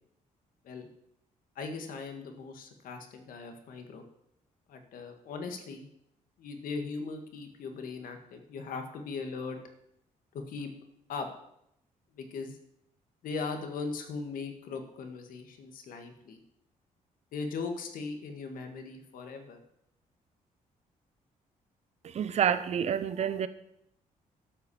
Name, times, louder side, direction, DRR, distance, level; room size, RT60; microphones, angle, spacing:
voice 1, 1.6-4.0 4.7-5.9 6.4-9.6 10.3-10.7 11.1-11.3 12.1-12.6 13.2-16.4 17.3-19.6, left 4 dB, 80° left, 5 dB, 1.8 m, -39 dB
voice 2, 22.0-23.5, right 8 dB, 50° right, 13 dB, 0.8 m, -28 dB
12.0 x 6.0 x 7.0 m, 0.77 s
cardioid pair, 125°, 14 cm